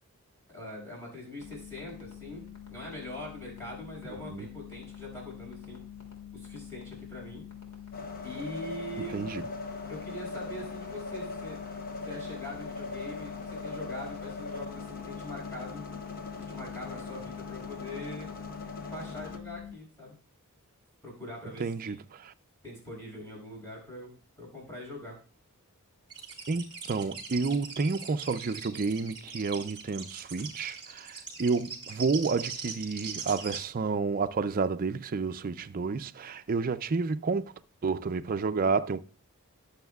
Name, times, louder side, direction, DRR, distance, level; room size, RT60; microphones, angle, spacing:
voice 1, 0.5-5.8 6.3-7.5 8.2-9.3 9.9-11.6 12.0-15.8 16.4-18.3 18.8-20.1 21.0-22.0 22.6-25.2, left 1 dB, 10° left, 6.5 m, -42 dB
sound 1, 1.4-19.7, left 9 dB, 80° left, 2.7 m, -45 dB
sound 2, 7.9-19.4, left 3 dB, 40° left, 0.8 m, -41 dB
voice 2, 21.6-22.3 26.5-37.5 37.8-39.0, right 4 dB, 40° right, 0.5 m, -30 dB
sound 3, 26.1-33.6, right 6 dB, 25° right, 2.2 m, -41 dB
20.0 x 7.2 x 2.3 m
head